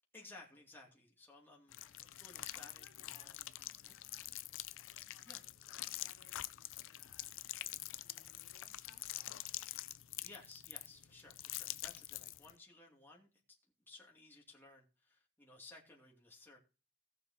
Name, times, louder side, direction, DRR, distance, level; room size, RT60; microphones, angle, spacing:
voice 1, 0.1-1.8 2.2-3.4 3.8-4.0 5.3-5.4 10.2-13.6 13.9-16.6, left 3 dB, 10° left, -2 dB, 2.5 m, -58 dB
sound 1, 1.7-12.5, left 15 dB, 60° left, 0.5 m, -46 dB
voice 2, 2.5-9.1, left 3 dB, 75° left, 0 dB, 3.2 m, -68 dB
18.0 x 6.9 x 2.8 m, 0.33 s
head